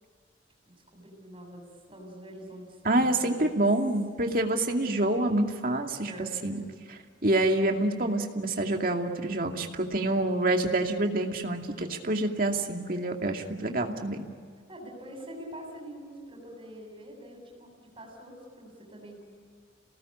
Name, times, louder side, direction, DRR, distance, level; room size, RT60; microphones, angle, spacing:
voice 1, 0.7-3.6 6.0-6.7 14.7-19.2, right 1 dB, 25° right, 0 dB, 7.6 m, -45 dB
voice 2, 2.8-6.1 6.4-6.6 7.2-14.2, right 2 dB, 50° right, 3 dB, 2.4 m, -27 dB
29.0 x 19.0 x 9.9 m, 2.1 s
head